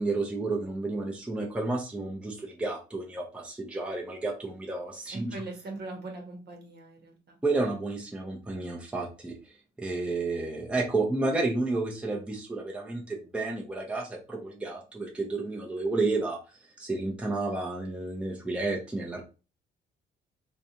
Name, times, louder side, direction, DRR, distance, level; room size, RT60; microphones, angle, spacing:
voice 1, 0.0-5.4 7.4-9.4 9.8-16.4 16.8-19.2, right 2 dB, 5° right, -1 dB, 0.6 m, -31 dB
voice 2, 5.1-7.4, right 3 dB, 55° right, 2 dB, 1.0 m, -40 dB
2.5 x 2.2 x 2.8 m, 0.32 s
cardioid pair, 90°, 20 cm